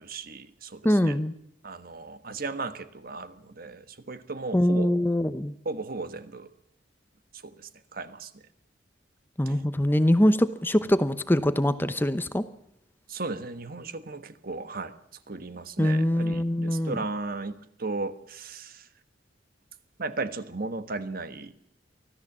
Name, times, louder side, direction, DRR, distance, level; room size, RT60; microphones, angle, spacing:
voice 1, 0.0-1.2 1.6-5.0 5.6-6.5 7.4-8.4 9.5-9.6 13.1-14.9 15.3-18.9 20.0-21.5, right 3 dB, 55° right, 11 dB, 1.4 m, -36 dB
voice 2, 0.8-1.4 4.5-5.5 9.4-12.5 15.8-17.0, left 1 dB, 10° left, 12 dB, 0.8 m, -23 dB
24.5 x 15.5 x 7.4 m, 0.75 s
head